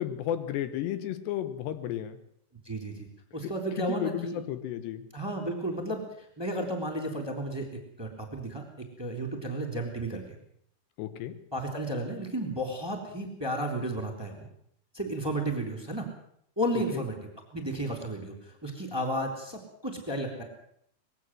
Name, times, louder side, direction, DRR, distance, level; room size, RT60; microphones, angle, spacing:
voice 1, 0.0-2.2 3.8-5.1 11.0-11.4 16.9-17.0, left 11 dB, 80° left, 11 dB, 3.2 m, -33 dB
voice 2, 2.6-3.1 3.3-4.4 5.1-7.7 8.0-10.4 11.5-14.5 14.9-16.0 16.6-17.1 17.5-20.4, right 1 dB, 5° right, 2 dB, 2.8 m, -33 dB
20.5 x 16.5 x 7.7 m, 0.67 s
omnidirectional pair, 5.0 m